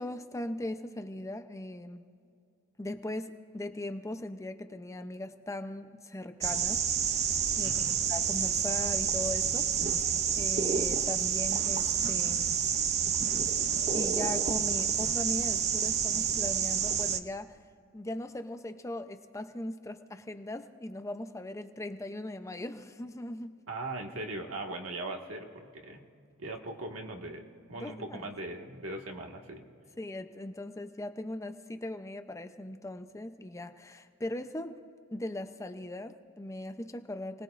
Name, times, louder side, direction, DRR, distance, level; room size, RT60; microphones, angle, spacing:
voice 1, 0.0-2.0 2.8-9.7 10.0-12.5 13.9-17.6 17.9-23.6 27.7-28.2 30.0-34.8 35.1-37.4, left 1 dB, 15° left, 8 dB, 0.6 m, -39 dB
sound 1, 6.4-17.2, right 7 dB, 35° right, 0.6 m, -29 dB
voice 2, 7.6-8.0 23.7-26.0 26.4-27.4 27.7-29.6, right 2 dB, 85° right, 2 dB, 1.7 m, -39 dB
29.5 x 19.0 x 2.5 m, 2.4 s
head